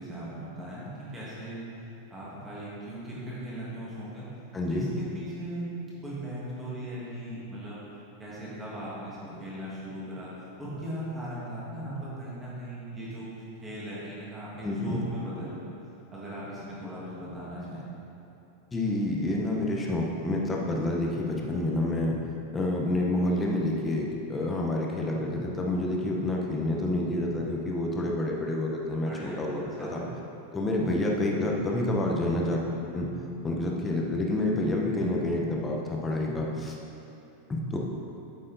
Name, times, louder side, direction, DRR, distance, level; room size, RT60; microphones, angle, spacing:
voice 1, 0.0-1.6 2.1-4.3 4.7-5.6 6.0-7.8 8.2-10.3 10.6-13.3 13.6-15.7 16.1-17.8 29.0-30.1, right 1 dB, 10° right, -8 dB, 1.6 m, -38 dB
voice 2, 4.5-4.9 14.6-15.0 18.7-22.2 22.5-30.0 30.5-32.6 32.9-33.1 33.4-36.8 37.5-37.8, left 1 dB, 10° left, -1 dB, 0.7 m, -28 dB
7.6 x 6.6 x 3.9 m, 3.0 s
supercardioid pair, 175°, 0 cm